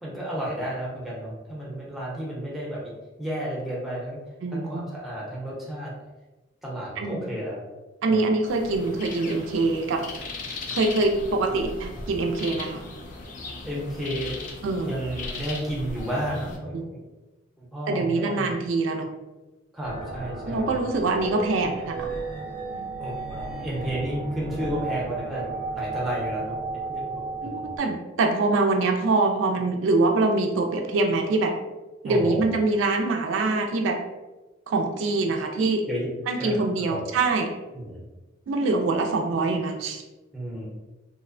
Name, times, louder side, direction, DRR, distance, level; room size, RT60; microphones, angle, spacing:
voice 1, 0.0-2.9 3.2-4.2 4.5-5.9 6.6-7.6 8.1-8.2 13.6-14.5 14.8-17.0 17.6-18.5 19.7-20.7 23.0-25.5 25.7-26.6 26.9-27.8 32.0-32.6 35.9-36.1 36.4-37.0 37.7-38.0 40.3-40.7, right 1 dB, ahead, -6 dB, 0.6 m, -32 dB
voice 2, 4.4-4.9 7.0-7.2 8.0-10.0 10.7-12.8 14.6-14.9 16.7-16.9 17.9-19.1 20.5-22.1 27.4-31.5 32.0-34.0 34.7-35.8 36.3-37.5 38.5-40.0, right 3 dB, 75° right, 3 dB, 0.3 m, -24 dB
sound 1, 8.5-16.6, left 3 dB, 40° left, 0.3 m, -37 dB
sound 2, 19.8-27.8, right 3 dB, 75° left, 1.0 m, -33 dB
2.6 x 2.0 x 2.5 m, 1.1 s
head